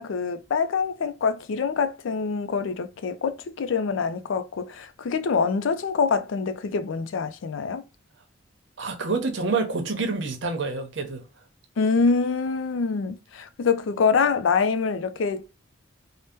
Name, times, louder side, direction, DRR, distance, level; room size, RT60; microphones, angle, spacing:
voice 1, 0.0-7.8 11.8-15.4, left 5 dB, 90° left, 0.4 m, -25 dB
voice 2, 8.8-11.2, right 3 dB, 70° right, 0.8 m, -27 dB
2.7 x 2.1 x 3.4 m
head